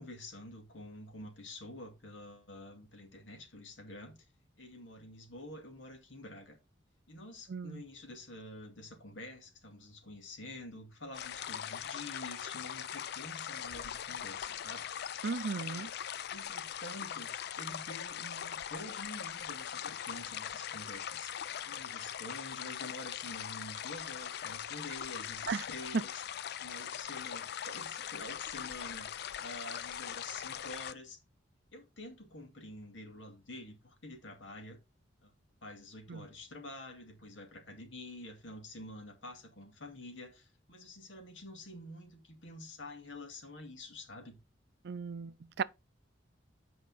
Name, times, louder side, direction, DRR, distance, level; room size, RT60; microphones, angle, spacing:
voice 1, 0.0-4.2 4.6-6.6 7.1-14.9 15.5-15.9 16.3-26.2 26.6-31.2 31.7-34.8 35.2-35.3 35.6-44.4, left 1 dB, 85° left, 2.2 m, -48 dB
voice 2, 7.5-7.8 15.2-15.9 25.5-25.6 25.9-26.0 36.1-36.3 44.8-45.6, right 5 dB, 60° right, 0.4 m, -35 dB
sound 1, 11.1-30.9, left 9 dB, 60° left, 0.4 m, -41 dB
8.4 x 5.4 x 4.0 m
head